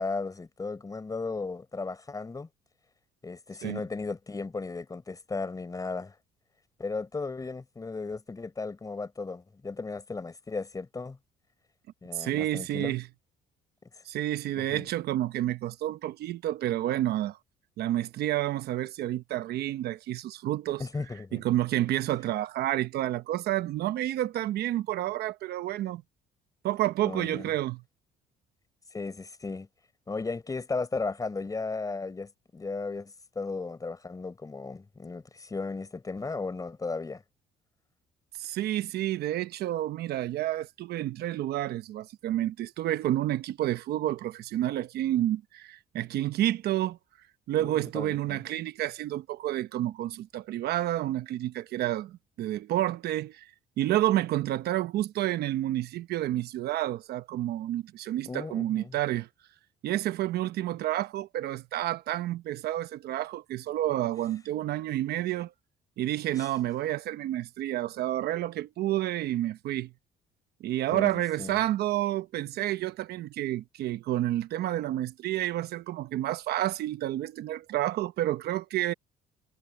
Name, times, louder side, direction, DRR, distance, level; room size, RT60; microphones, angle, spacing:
voice 1, 0.0-2.5 3.2-6.1 6.8-11.2 12.0-12.9 14.6-14.9 20.8-21.4 27.0-27.5 28.9-29.7 30.1-37.2 47.6-48.4 58.2-59.0 66.3-66.5 70.9-71.6, left 3 dB, 20° left, 4.3 m, -35 dB
voice 2, 12.1-13.0 14.1-17.4 17.8-20.8 21.3-26.0 26.6-27.8 38.4-47.0 47.5-53.5 53.8-59.3 59.8-65.5 66.0-69.9 70.6-78.9, right 14 dB, 70° right, 1.0 m, -30 dB
cardioid pair, 110°, 17 cm